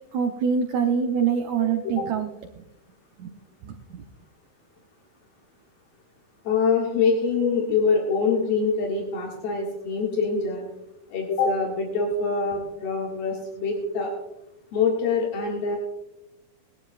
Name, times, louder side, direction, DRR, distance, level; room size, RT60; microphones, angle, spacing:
voice 1, 0.1-2.3 3.2-3.3 3.6-4.0, right 7 dB, 85° right, 4 dB, 1.6 m, -25 dB
voice 2, 1.6-2.0 6.5-10.6 11.1-14.1 14.7-15.8, left 5 dB, 80° left, -2 dB, 3.8 m, -24 dB
19.5 x 12.5 x 2.4 m, 0.91 s
omnidirectional pair, 4.4 m